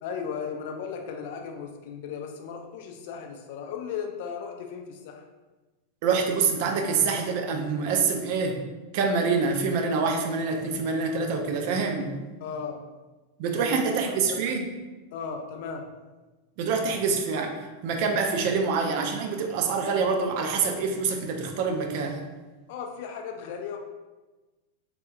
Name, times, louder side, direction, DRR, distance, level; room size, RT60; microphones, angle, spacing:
voice 1, 0.0-5.2 12.4-12.8 13.6-14.5 15.1-15.9 22.7-23.8, left 6 dB, 50° left, 3 dB, 0.3 m, -36 dB
voice 2, 6.0-8.6 8.9-12.2 13.4-14.6 16.6-17.6 17.8-22.2, right 5 dB, 45° right, 3 dB, 0.3 m, -26 dB
3.4 x 2.2 x 2.3 m, 1.2 s
figure-of-eight pair, 90°, 0 cm